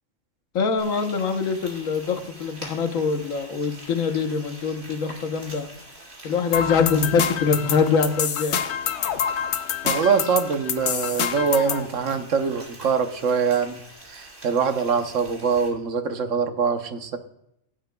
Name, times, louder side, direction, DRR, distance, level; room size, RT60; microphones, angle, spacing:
voice 1, 0.5-5.7 6.2-8.6, left 5 dB, 90° left, 6 dB, 1.4 m, -24 dB
Frying (food), 0.8-15.7, right 1 dB, 55° right, 3.3 m, -45 dB
sound 1, 6.5-11.9, left 8 dB, 65° left, 0.9 m, -27 dB
voice 2, 9.8-13.8 14.1-17.2, right 6 dB, 70° right, 7 dB, 1.3 m, -23 dB
17.0 x 8.9 x 2.3 m, 0.78 s
omnidirectional pair, 1.3 m